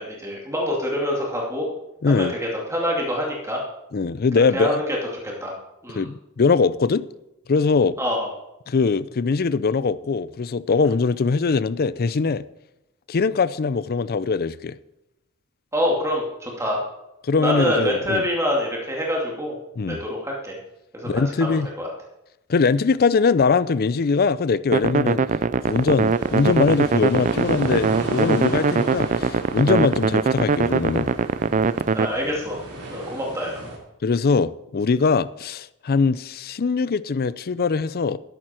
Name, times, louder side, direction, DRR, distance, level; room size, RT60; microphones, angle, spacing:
voice 1, 0.0-1.6 2.1-3.6 4.4-5.0 5.4-5.5 5.8-6.1 8.0-8.3 15.7-16.8 17.3-19.6 19.9-20.5 20.9-21.1 21.4-21.9 31.9-32.6 32.9-33.6, equal, 15° right, 2.4 m, -25 dB
voice 2, 2.0-2.3 3.9-4.8 5.9-7.0 7.5-7.9 8.7-12.4 13.1-14.8 17.3-18.3 19.8-20.0 21.0-21.7 22.5-25.2 25.7-31.1 34.0-38.2, left 4 dB, 45° left, 0.5 m, -21 dB
sound 1, 24.7-32.1, right 5 dB, 35° right, 0.3 m, -22 dB
sound 2, 25.7-33.8, right 2 dB, 75° right, 3.5 m, -35 dB
13.0 x 11.0 x 4.4 m
head